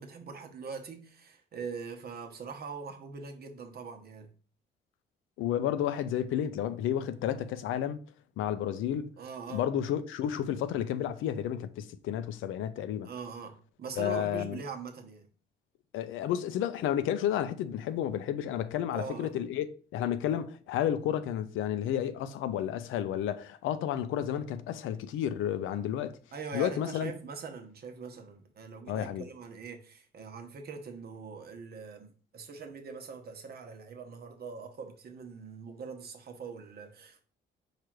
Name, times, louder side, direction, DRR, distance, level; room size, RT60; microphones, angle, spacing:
voice 1, 0.0-4.3 9.2-9.6 13.0-15.3 18.9-19.4 26.3-37.2, right 5 dB, 50° right, 0.9 m, -42 dB
voice 2, 5.4-8.0 8.4-9.1 9.5-13.1 14.0-14.6 15.9-26.2 26.5-27.1 28.9-29.3, left 10 dB, 85° left, 0.5 m, -31 dB
4.8 x 2.5 x 4.4 m
cardioid pair, 90°, 20 cm